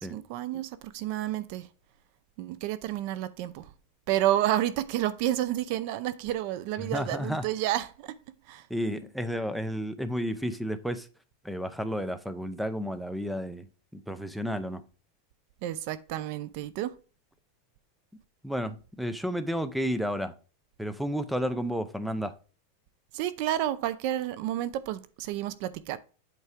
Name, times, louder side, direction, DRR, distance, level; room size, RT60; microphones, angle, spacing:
voice 1, 0.1-1.7 2.4-3.7 4.1-8.2 8.5-8.7 15.6-17.0 23.1-26.0, right 13 dB, 45° right, 0.5 m, -30 dB
voice 2, 6.8-7.4 8.7-11.1 11.4-13.7 13.9-14.8 18.4-20.3 20.8-22.3, equal, ahead, 0.6 m, -32 dB
8.3 x 4.6 x 3.6 m
supercardioid pair, 160°, 0 cm